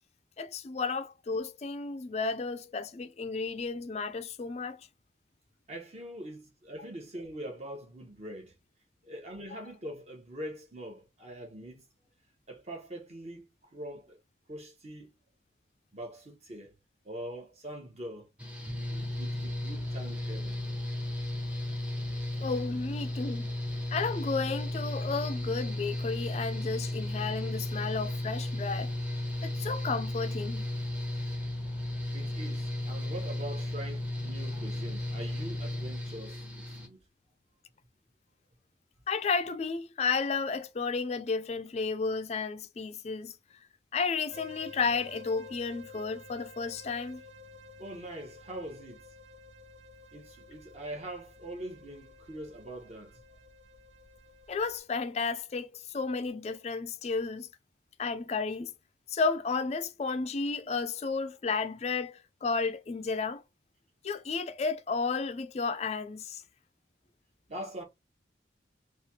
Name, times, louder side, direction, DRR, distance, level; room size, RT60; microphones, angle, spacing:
voice 1, 0.4-4.9 9.5-9.6 22.4-23.5 23.9-28.9 29.4-30.6 39.1-43.3 43.9-47.2 54.5-57.5 58.0-58.7 59.1-63.4 64.0-66.4, left 4 dB, 35° left, 0.3 m, -32 dB
voice 2, 5.7-8.5 9.0-11.8 12.5-14.2 14.5-15.1 15.9-16.7 17.0-18.3 18.7-20.7 32.1-37.0 47.8-49.0 50.1-53.2 67.5-67.8, right 1 dB, 35° right, 1.0 m, -43 dB
Mechanical fan, 18.4-36.9, left 1 dB, 5° right, 0.7 m, -34 dB
sound 1, 44.3-54.8, left 3 dB, 75° right, 0.5 m, -51 dB
3.2 x 2.4 x 2.7 m
head